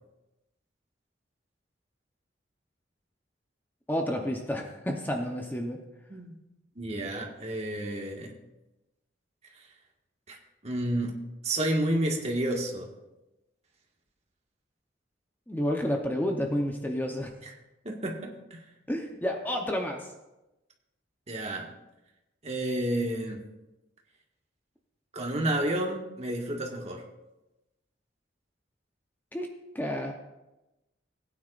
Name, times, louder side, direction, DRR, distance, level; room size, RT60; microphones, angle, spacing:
voice 1, 3.9-5.8 15.5-17.3 18.9-20.1 29.3-30.1, equal, 10° left, 2 dB, 0.8 m, -30 dB
voice 2, 6.7-8.3 9.6-9.7 10.3-10.4 10.6-11.1 11.4-12.9 17.4-17.5 17.8-18.6 21.3-21.7 22.4-23.4 25.1-27.0, right 1 dB, 35° right, 0 dB, 1.7 m, -30 dB
18.0 x 9.6 x 2.5 m, 0.98 s
head